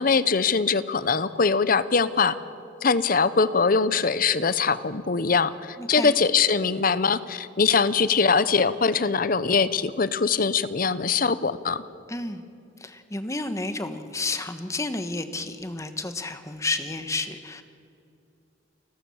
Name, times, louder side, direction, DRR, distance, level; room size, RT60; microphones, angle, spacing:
voice 1, 0.0-2.4 2.8-11.8, left 5 dB, 45° left, 15 dB, 0.7 m, -22 dB
voice 2, 5.8-6.2 12.1-12.4 12.8-17.6, left 2 dB, 15° left, 9 dB, 1.1 m, -31 dB
29.5 x 14.0 x 7.1 m, 2.6 s
head